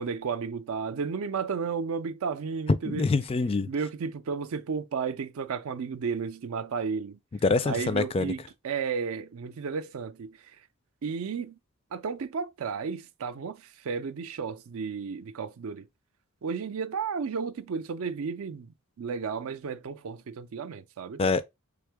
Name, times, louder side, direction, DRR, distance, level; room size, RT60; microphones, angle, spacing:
voice 1, 0.0-3.0 3.7-7.2 7.6-10.4 11.0-11.6 11.9-15.9 16.4-21.2, right 5 dB, 65° right, 0.4 m, -33 dB
voice 2, 2.9-3.7 7.4-8.3 21.2-21.4, left 4 dB, 25° left, 0.3 m, -25 dB
3.6 x 3.6 x 3.4 m
head